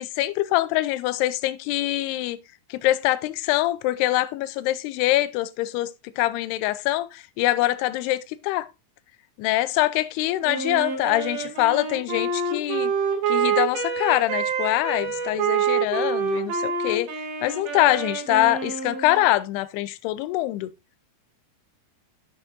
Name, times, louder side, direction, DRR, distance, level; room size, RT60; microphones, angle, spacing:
voice 1, 0.0-2.4 2.7-5.9 6.2-8.7 9.4-12.9 13.3-17.1 17.4-20.7, left 16 dB, 85° left, 2.7 m, -24 dB
Wind instrument woodwind instrument, 10.4-19.3, right 6 dB, 90° right, 4.7 m, -27 dB
15.0 x 6.2 x 2.6 m
omnidirectional pair, 4.8 m